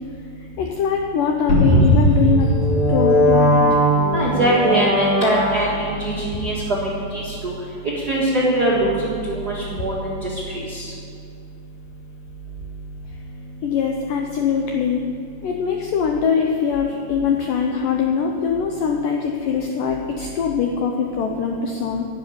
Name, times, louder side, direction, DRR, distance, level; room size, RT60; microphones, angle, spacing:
voice 1, 0.6-2.5 2.9-3.7 13.6-15.1 15.4-22.1, left 6 dB, 85° left, 2 dB, 1.9 m, -22 dB
sound 1, 1.5-5.9, equal, 50° left, 1.7 m, -18 dB
voice 2, 4.1-6.5 8.1-8.9 9.3-10.2, right 1 dB, 70° right, -7 dB, 0.9 m, -21 dB
11.5 x 7.9 x 8.8 m, 2.4 s
omnidirectional pair, 4.8 m